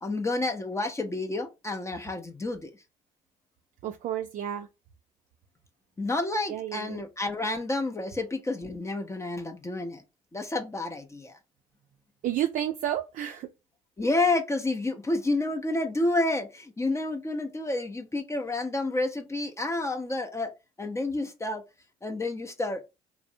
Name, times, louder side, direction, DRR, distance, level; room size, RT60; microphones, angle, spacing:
voice 1, 0.0-2.7 6.0-10.0 10.3-11.4 14.0-20.5 20.8-21.6 22.0-22.8, left 2 dB, 15° left, 0.5 m, -29 dB
voice 2, 3.8-4.7 6.5-7.0 12.2-13.5, right 11 dB, 50° right, 0.4 m, -31 dB
2.5 x 2.0 x 2.5 m
hypercardioid pair, 65°, 17 cm